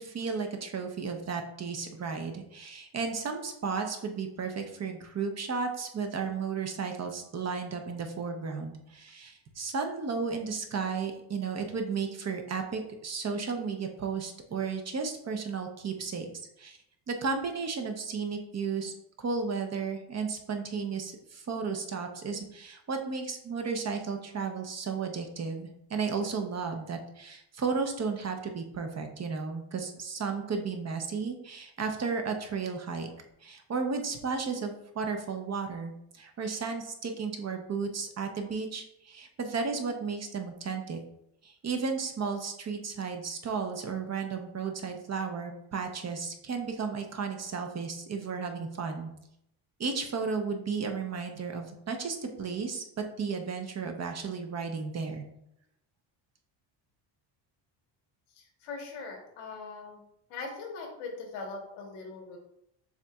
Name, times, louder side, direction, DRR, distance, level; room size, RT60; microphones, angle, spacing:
voice 1, 0.0-16.3 16.6-16.8 17.1-33.1 33.4-41.0 41.4-49.1 49.8-55.2, right 5 dB, 30° right, 5 dB, 0.7 m, -34 dB
voice 2, 58.4-60.0 60.3-62.4, left 4 dB, 90° left, 1 dB, 1.3 m, -41 dB
7.1 x 2.6 x 2.3 m, 0.78 s
cardioid pair, 100°, 50 cm